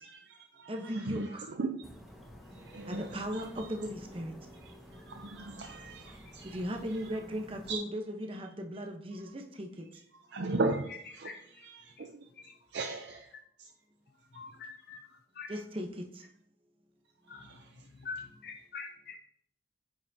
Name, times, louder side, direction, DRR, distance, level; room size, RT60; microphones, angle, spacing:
voice 1, 0.0-1.8 2.5-3.7 4.6-6.6 6.9-7.2 7.7-7.8 10.3-13.7 14.3-14.4 17.3-17.9, right 3 dB, 70° right, 0.5 m, -38 dB
voice 2, 0.7-1.5 2.9-4.3 6.5-9.9 15.5-15.9, equal, 30° right, 0.9 m, -37 dB
sound 1, 1.8-7.8, equal, ahead, 0.9 m, -52 dB
voice 3, 11.2-11.7 12.3-12.5 14.3-15.6 17.3-17.6 17.9-19.1, left 5 dB, 55° left, 0.5 m, -45 dB
9.0 x 5.7 x 2.7 m
head